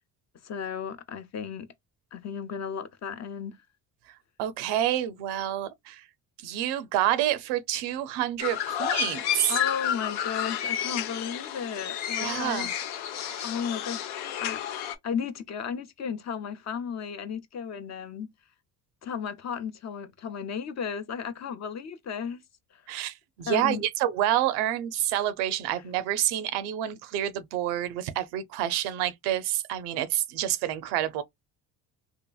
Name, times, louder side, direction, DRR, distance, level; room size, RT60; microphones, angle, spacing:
voice 1, 0.4-1.7 2.1-3.6 9.5-12.7 13.4-14.1 14.4-14.6 15.0-18.3 19.0-22.4 22.7-22.8 23.5-23.8, left 7 dB, 45° left, 0.6 m, -34 dB
voice 2, 4.4-6.0 6.4-9.6 12.2-12.7 13.2-13.4 22.9-31.2, right 12 dB, 90° right, 0.6 m, -28 dB
sound 1, 8.4-14.9, left 10 dB, 85° left, 0.6 m, -31 dB
2.8 x 2.4 x 2.3 m
cardioid pair, 90°, 39 cm